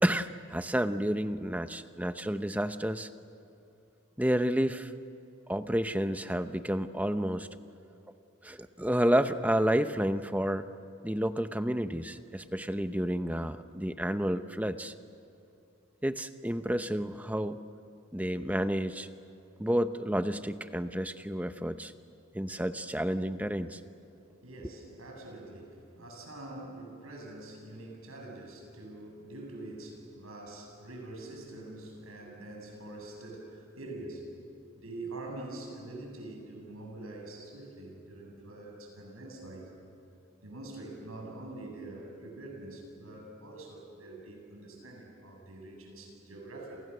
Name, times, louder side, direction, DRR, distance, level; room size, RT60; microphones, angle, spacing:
voice 1, 0.0-3.1 4.2-4.9 5.5-7.5 8.4-10.7 11.0-14.9 16.0-17.6 18.1-19.1 19.6-21.9 22.3-23.8, equal, 5° right, 10 dB, 0.7 m, -30 dB
voice 2, 24.4-34.3 34.8-39.7 40.4-46.8, right 2 dB, 90° right, 1 dB, 7.5 m, -45 dB
29.0 x 28.5 x 6.8 m, 2.7 s
head